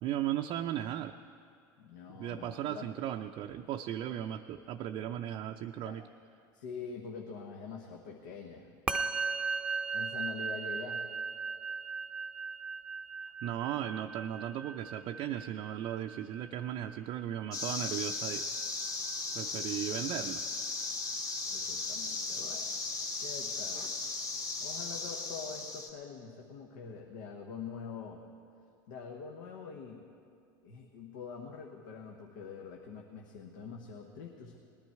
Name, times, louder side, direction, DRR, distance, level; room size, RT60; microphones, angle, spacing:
voice 1, 0.0-1.2 2.2-6.0 13.2-18.4 19.3-20.4, right 11 dB, 50° right, 4 dB, 0.5 m, -36 dB
voice 2, 1.8-2.9 5.8-6.0 6.5-8.7 9.9-11.1 19.5-19.8 21.5-22.8 23.2-23.9 24.6-28.2 28.9-30.0 30.6-34.6, left 5 dB, 75° left, 1 dB, 1.1 m, -45 dB
Musical instrument, 8.9-18.4, right 4 dB, 10° right, 0.7 m, -38 dB
sound 1, 17.5-25.9, left 3 dB, 35° left, 1.9 m, -36 dB
19.0 x 10.5 x 4.6 m, 2.4 s
hypercardioid pair, 90°, 11 cm